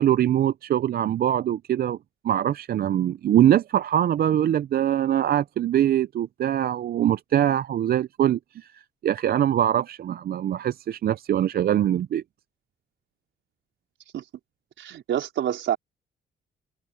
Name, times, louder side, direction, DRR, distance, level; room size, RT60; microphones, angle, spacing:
voice 1, 0.0-2.0 2.2-12.2, right 11 dB, 50° right, 0.5 m, -23 dB
voice 2, 14.8-15.8, right 10 dB, 70° right, 4.8 m, -27 dB
open air
cardioid pair, 90°, 20 cm